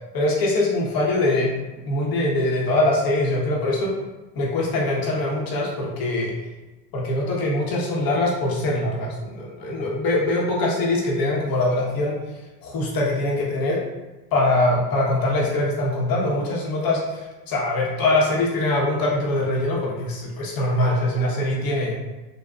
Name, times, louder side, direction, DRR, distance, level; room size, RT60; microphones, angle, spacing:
voice 1, 0.1-1.6 1.8-4.0 4.3-6.4 6.9-12.2 12.6-13.8 14.3-21.9, left 2 dB, 45° left, -3 dB, 1.0 m, -23 dB
3.7 x 2.2 x 2.2 m, 1.1 s
supercardioid pair, 110°, 49 cm